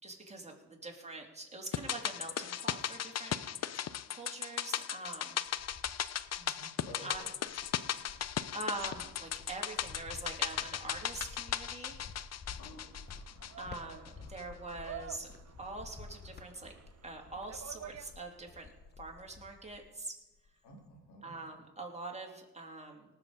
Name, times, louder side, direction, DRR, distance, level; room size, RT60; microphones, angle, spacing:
voice 1, 0.0-3.8 4.1-5.4 7.0-7.2 8.0-8.2 8.5-12.0 13.6-15.3 15.6-16.7 17.0-18.7 19.0-20.1 21.2-23.0, right 2 dB, 15° right, 0 dB, 3.2 m, -44 dB
sound 1, 1.7-14.1 14.4-14.5, left 10 dB, 40° left, 0.6 m, -37 dB
Cricket, 5.1-6.6 7.1-20.0 20.3-20.9, left 4 dB, 25° left, 1.2 m, -52 dB
voice 2, 6.4-7.5 12.6-13.2 20.6-21.5, equal, 75° left, -1 dB, 3.3 m, -53 dB
sound 2, 12.2-18.6, right 8 dB, 40° right, 0.9 m, -51 dB
19.0 x 7.1 x 5.2 m, 1.1 s
supercardioid pair, 60°, 41 cm